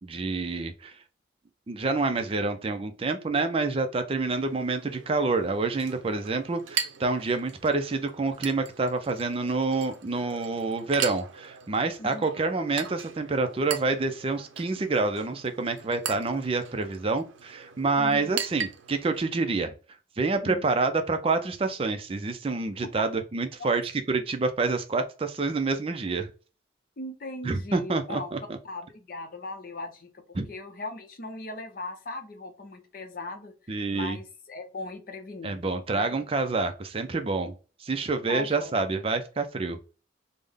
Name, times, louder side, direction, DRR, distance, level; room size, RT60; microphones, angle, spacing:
voice 1, 0.0-1.0 1.7-19.7 20.2-26.3 27.4-28.6 30.4-30.5 33.7-34.2 35.4-37.5 37.8-39.8, right 3 dB, 30° right, 0.4 m, -27 dB
Chink clink, 4.2-19.2, right 8 dB, 80° right, 0.5 m, -39 dB
voice 2, 18.0-18.3 20.4-20.6 22.8-22.9 23.6-23.7 27.0-28.3 28.6-36.2 38.3-39.0, left 2 dB, 45° left, 0.6 m, -39 dB
3.6 x 2.0 x 3.4 m
head